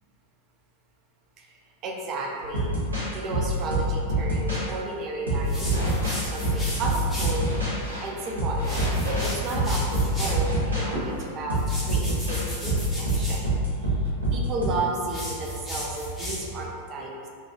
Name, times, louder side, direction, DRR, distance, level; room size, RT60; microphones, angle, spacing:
voice 1, 1.8-2.8 3.1-13.9 14.3-17.1, right 2 dB, 35° right, -1 dB, 0.4 m, -33 dB
sound 1, 2.4-4.7 5.3-7.8 8.4-9.3 9.5-10.9 11.5-14.7, right 1 dB, 75° right, 0.6 m, -26 dB
sound 2, 5.4-7.4 8.5-10.5 11.5-13.4 15.0-16.6, left 1 dB, 5° left, 0.6 m, -33 dB
sound 3, 5.6-11.2, equal, 80° left, 0.7 m, -36 dB
2.6 x 2.3 x 2.2 m, 2.2 s
figure-of-eight pair, 90°, 0 cm